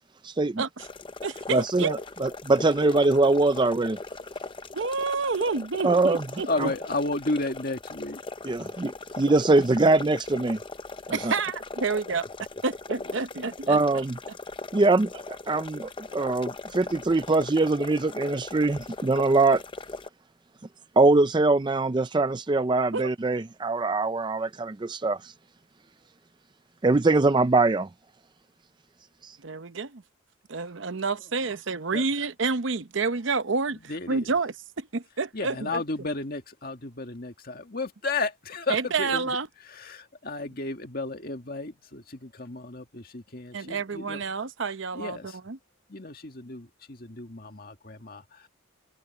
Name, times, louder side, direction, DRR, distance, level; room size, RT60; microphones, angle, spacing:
voice 1, 0.2-0.6 1.5-4.0 5.8-6.2 6.6-6.7 8.4-10.6 11.1-11.3 13.7-14.2 14.7-19.6 21.0-25.3 26.8-27.9 29.2-29.4, right 3 dB, 20° right, 0.4 m, -23 dB
sound 1, 0.8-20.1, left 3 dB, 25° left, 0.6 m, -39 dB
voice 2, 1.2-2.0 4.7-6.7 11.1-12.3 12.6-14.0 22.9-23.1 29.4-30.0 30.5-33.8 34.1-35.7 38.7-39.5 43.5-45.2 45.5-45.6, right 4 dB, 65° right, 0.8 m, -29 dB
voice 3, 6.5-8.2 13.0-13.1 31.9-32.1 33.9-34.3 35.3-39.4 39.7-44.2 44.9-45.4 45.9-48.5, left 3 dB, 45° left, 1.9 m, -33 dB
head